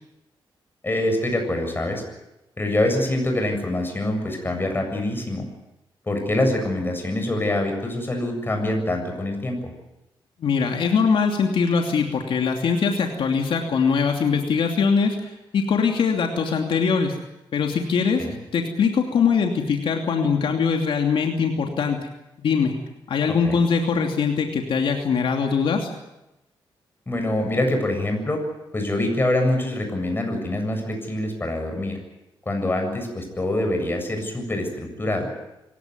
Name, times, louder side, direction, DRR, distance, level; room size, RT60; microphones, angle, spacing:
voice 1, 0.8-2.0 2.6-5.5 6.1-9.7 18.2-18.3 23.3-23.6 27.1-28.4 28.7-32.0 32.5-35.3, left 1 dB, 25° left, 4 dB, 7.5 m, -25 dB
voice 2, 10.4-17.2 17.5-18.3 18.5-22.0 22.4-22.7 23.1-25.9, left 5 dB, 80° left, 3 dB, 2.8 m, -22 dB
26.0 x 16.5 x 9.5 m, 0.93 s
cardioid pair, 95°, 9 cm